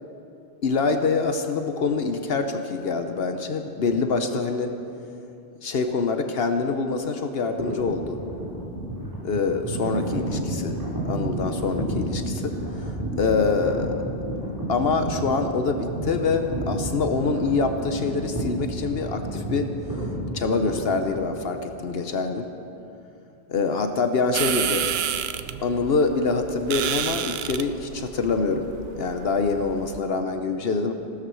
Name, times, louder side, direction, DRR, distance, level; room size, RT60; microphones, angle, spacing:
voice 1, 0.6-4.7 5.6-8.2 9.2-10.8 11.0-12.9 13.2-14.0 14.7-19.7 20.3-22.5 23.5-24.9 25.6-28.7 29.0-30.9, left 4 dB, 70° left, 7 dB, 1.1 m, -25 dB
sound 1, 7.6-21.6, right 1 dB, 20° right, 4.5 m, -31 dB
sound 2, 24.3-30.0, right 9 dB, 75° right, 0.8 m, -30 dB
16.5 x 13.0 x 6.2 m, 2.9 s
omnidirectional pair, 1.0 m